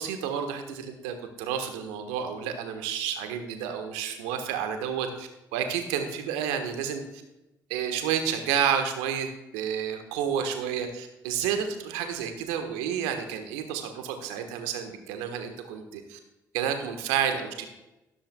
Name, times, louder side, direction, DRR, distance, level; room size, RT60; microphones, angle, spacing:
voice 1, 0.0-7.0 7.7-9.3 9.5-16.2 16.5-17.7, right 8 dB, 75° right, 6 dB, 1.2 m, -30 dB
14.0 x 13.0 x 2.3 m, 0.96 s
hypercardioid pair, 40°, 10 cm